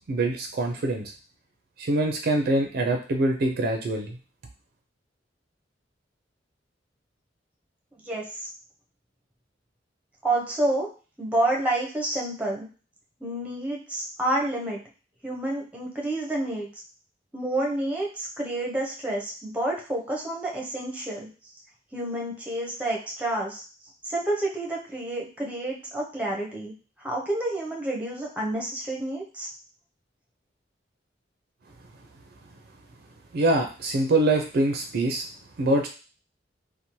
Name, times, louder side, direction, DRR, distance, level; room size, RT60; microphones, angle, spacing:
voice 1, 0.1-1.1 1.8-4.2 33.3-35.3 35.6-35.9, right 2 dB, 55° right, 4 dB, 0.4 m, -24 dB
voice 2, 8.0-8.5 10.2-10.9 11.2-12.7 13.2-14.8 15.2-16.7 17.3-21.3 21.9-23.6 24.0-26.8 27.0-29.5, right 1 dB, 10° right, -2 dB, 0.6 m, -29 dB
2.7 x 2.0 x 2.9 m, 0.35 s
head